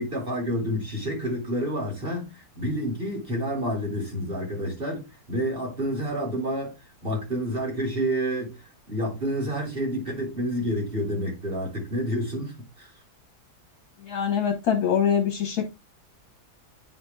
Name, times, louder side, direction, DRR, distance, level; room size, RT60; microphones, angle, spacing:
voice 1, 0.0-6.8 7.0-12.9, equal, 35° right, 2.9 m, -29 dB
voice 2, 14.0-15.7, left 8 dB, 75° left, 1.6 m, -24 dB
8.7 x 3.7 x 3.4 m
omnidirectional pair, 1.6 m